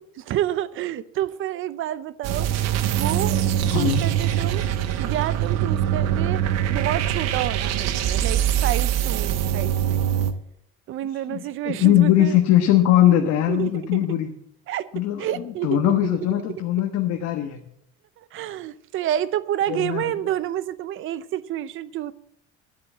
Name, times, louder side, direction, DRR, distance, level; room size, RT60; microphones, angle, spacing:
voice 1, 0.3-2.5 2.8-3.4 3.7-4.7 5.0-10.1 10.9-12.4 13.5-14.0 14.7-16.2 16.5-16.6 18.2-22.1, right 12 dB, 45° right, 0.6 m, -29 dB
sound 1, 2.2-10.3, right 10 dB, 60° right, 1.1 m, -23 dB
voice 2, 3.6-4.0 11.3-11.4 11.6-14.3 14.9-17.7 19.7-20.0, left 12 dB, 60° left, 1.3 m, -20 dB
11.0 x 8.5 x 7.4 m
cardioid pair, 170°, 30 cm